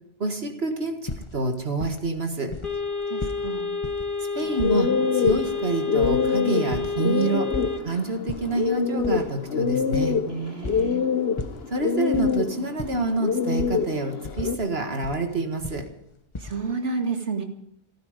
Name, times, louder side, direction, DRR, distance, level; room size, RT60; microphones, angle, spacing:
voice 1, 0.2-2.5 4.3-7.5 7.8-10.2 11.7-15.9, right 3 dB, 65° right, 5 dB, 2.0 m, -27 dB
sound 1, 1.1-2.2 2.5-2.8 3.0-3.4 3.8-4.1 4.4-6.3 6.7-6.9 7.2-7.8 8.2-8.5 9.0-10.9 11.4-12.3 12.6-13.1 13.6-13.8 14.2-15.2 15.6-16.6, left 2 dB, 25° left, 1.1 m, -35 dB
sound 2, 2.6-7.8, left 4 dB, 50° left, 2.3 m, -29 dB
voice 2, 3.1-3.7 10.3-11.0 16.4-17.4, right 4 dB, 85° right, 5 dB, 2.2 m, -30 dB
sound 3, 4.4-14.6, left 6 dB, 65° left, 1.3 m, -26 dB
28.5 x 9.7 x 5.1 m, 0.77 s
omnidirectional pair, 1.1 m